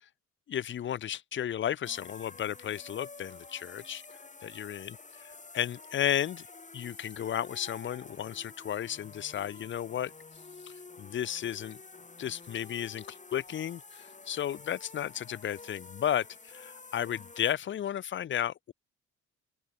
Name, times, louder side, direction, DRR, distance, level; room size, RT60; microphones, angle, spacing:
voice 1, 0.5-4.0 4.4-4.9 5.5-6.5 6.7-10.1 10.6-10.7 11.0-11.8 12.2-18.7, left 10 dB, 40° left, 0.5 m, -33 dB
sound 1, 1.8-17.5, left 4 dB, 25° left, 3.0 m, -49 dB
open air
cardioid pair, 90°, 30 cm